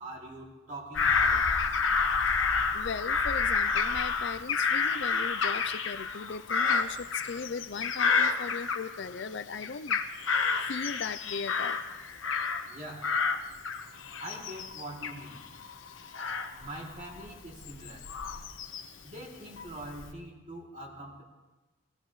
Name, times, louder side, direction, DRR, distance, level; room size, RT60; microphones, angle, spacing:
voice 1, 0.0-1.5 12.7-13.2 14.2-15.4 16.6-18.1 19.0-21.2, right 1 dB, 35° right, -2 dB, 2.8 m, -43 dB
Bird vocalization bird call bird song / Crow, 0.9-9.3 9.6-12.7 13.0-19.0 19.6-20.1, left 5 dB, 75° left, 1.1 m, -29 dB
voice 2, 2.7-10.0 10.7-11.8, left 5 dB, 60° left, 12 dB, 0.4 m, -38 dB
22.5 x 16.5 x 3.2 m, 1.2 s
head